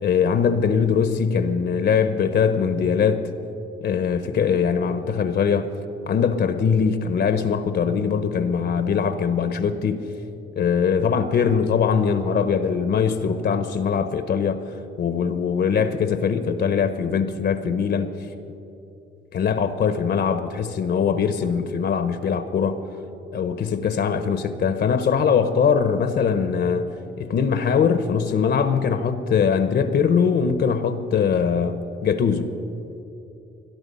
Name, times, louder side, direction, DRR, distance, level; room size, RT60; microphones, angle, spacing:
voice 1, 0.0-3.3 3.8-5.7 6.1-10.0 10.6-14.6 15.0-18.1 19.3-22.8 23.3-26.9 27.2-32.5, left 6 dB, 60° left, 10 dB, 0.9 m, -21 dB
21.5 x 11.0 x 5.5 m, 2.9 s
cardioid pair, 90°, 20 cm